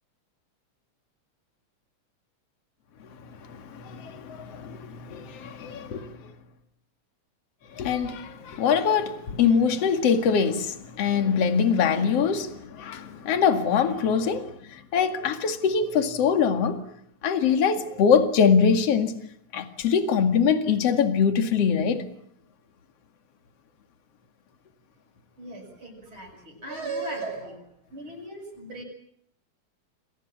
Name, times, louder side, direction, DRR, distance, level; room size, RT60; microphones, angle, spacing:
voice 1, 3.4-6.3 7.7-16.8 17.2-19.1 19.5-22.1, left 6 dB, 55° left, 3.1 m, -23 dB
voice 2, 25.4-28.8, right 3 dB, 45° right, 7.6 m, -37 dB
29.5 x 23.0 x 7.3 m
omnidirectional pair, 3.3 m